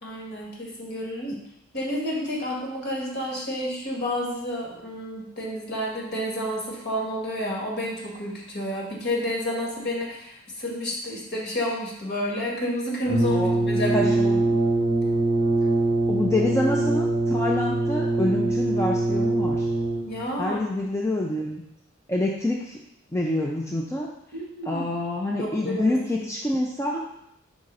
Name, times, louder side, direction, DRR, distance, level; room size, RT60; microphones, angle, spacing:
voice 1, 0.0-1.3 1.7-14.1 20.1-20.6 24.3-24.8 25.4-26.0, equal, 50° left, -2 dB, 1.7 m, -30 dB
Brass instrument, 13.1-20.2, right 2 dB, 30° right, 1.1 m, -23 dB
voice 2, 13.9-14.6 16.1-19.7 20.4-21.6 22.1-22.8 23.1-24.1 24.6-27.1, left 1 dB, 15° left, -2 dB, 0.5 m, -27 dB
4.8 x 3.8 x 5.3 m, 0.78 s
head